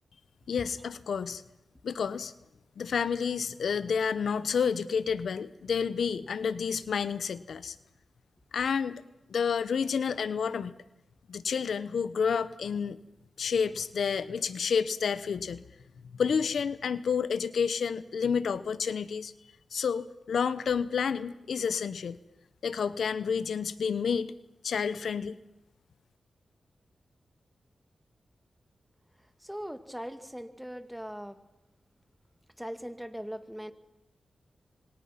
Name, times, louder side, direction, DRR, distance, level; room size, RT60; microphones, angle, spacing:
voice 1, 0.5-1.4 1.8-2.3 2.8-7.8 8.5-9.0 9.3-10.7 11.3-13.0 13.4-15.6 16.1-19.3 19.7-22.2 22.6-24.3 24.6-25.3, left 6 dB, 80° left, 15 dB, 0.9 m, -30 dB
voice 2, 29.4-31.4 32.6-33.7, equal, ahead, 9 dB, 2.1 m, -40 dB
27.5 x 24.5 x 5.9 m, 0.93 s
cardioid pair, 65°, 0 cm